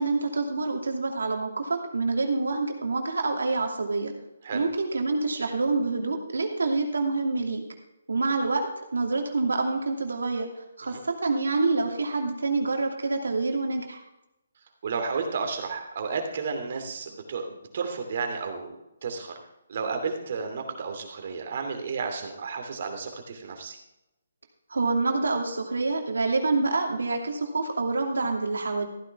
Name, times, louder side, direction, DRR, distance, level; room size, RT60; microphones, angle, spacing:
voice 1, 0.0-4.1 4.5-7.6 8.1-8.7 8.9-10.5 10.8-14.0 24.7-28.9, right 3 dB, 90° right, 2 dB, 2.6 m, -27 dB
voice 2, 14.8-19.3 19.7-23.8, right 5 dB, 50° right, 4 dB, 2.7 m, -32 dB
15.0 x 9.9 x 3.6 m, 0.89 s
hypercardioid pair, 155°, 0 cm